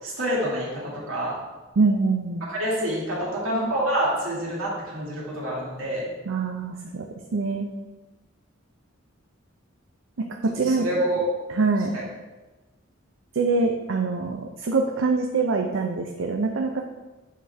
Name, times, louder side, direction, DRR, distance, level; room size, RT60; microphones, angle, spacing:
voice 1, 0.0-1.4 2.5-6.1 10.6-11.2 11.9-12.0, right 1 dB, 85° right, -5 dB, 2.4 m, -27 dB
voice 2, 1.8-2.4 6.3-7.7 10.2-10.9 11.5-12.0 13.3-16.8, right 4 dB, 70° right, 2 dB, 0.5 m, -24 dB
7.7 x 5.0 x 3.4 m, 1.2 s
head